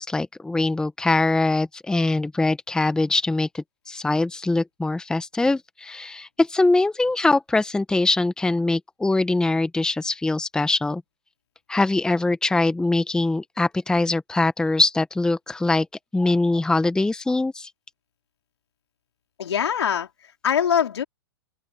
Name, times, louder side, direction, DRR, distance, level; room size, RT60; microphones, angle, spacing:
voice 1, 0.0-11.0 11.7-15.9 16.1-17.7, left 2 dB, 5° left, 1.0 m, -22 dB
voice 2, 19.4-21.0, left 8 dB, 80° left, 3.9 m, -23 dB
open air
hypercardioid pair, 120°, 14 cm